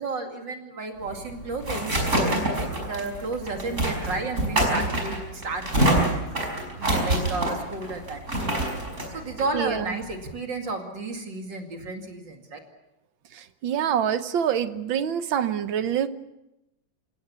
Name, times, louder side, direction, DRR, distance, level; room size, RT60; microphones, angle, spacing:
voice 1, 0.0-6.5 6.8-8.2 8.5-8.7 9.1-12.6, right 3 dB, 70° right, 3 dB, 3.1 m, -33 dB
sound 1, 1.0-10.3, right 1 dB, 40° right, 5.8 m, -26 dB
voice 2, 9.5-9.9 13.4-16.1, right 9 dB, 85° right, 11 dB, 1.8 m, -26 dB
28.5 x 17.0 x 7.0 m, 0.93 s
omnidirectional pair, 2.1 m